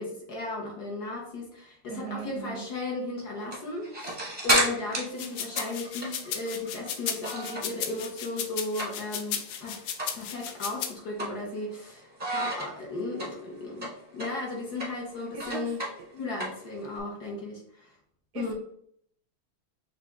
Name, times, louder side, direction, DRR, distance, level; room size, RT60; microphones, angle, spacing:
voice 1, 0.0-9.9 10.1-15.8 16.1-17.9 18.3-18.5, left 2 dB, 60° left, 0 dB, 1.3 m, -35 dB
voice 2, 1.9-2.7 15.3-15.7 18.3-18.5, right 8 dB, 75° right, 5 dB, 1.0 m, -38 dB
sound 1, 3.3-7.8 8.1-9.3 9.6-9.7 10.0-10.2 10.6-11.8 12.2-17.0, right 1 dB, 20° right, 0.7 m, -32 dB
sound 2, 5.1-10.9, left 8 dB, 75° left, 0.9 m, -34 dB
6.1 x 2.5 x 3.5 m, 0.67 s
omnidirectional pair, 2.2 m